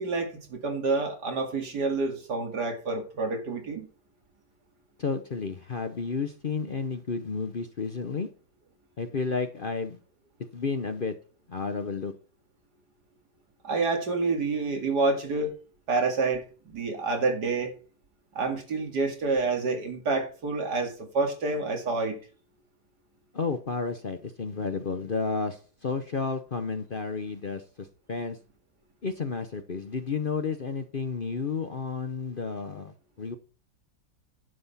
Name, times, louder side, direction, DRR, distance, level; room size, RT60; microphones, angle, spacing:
voice 1, 0.0-3.9 13.6-15.5 15.9-17.7 18.3-22.2, right 3 dB, 75° right, 2.7 m, -28 dB
voice 2, 5.0-8.3 9.0-10.0 10.5-11.1 11.5-12.1 23.3-28.4 29.0-33.4, left 4 dB, 40° left, 0.8 m, -32 dB
11.0 x 7.8 x 4.2 m
omnidirectional pair, 1.8 m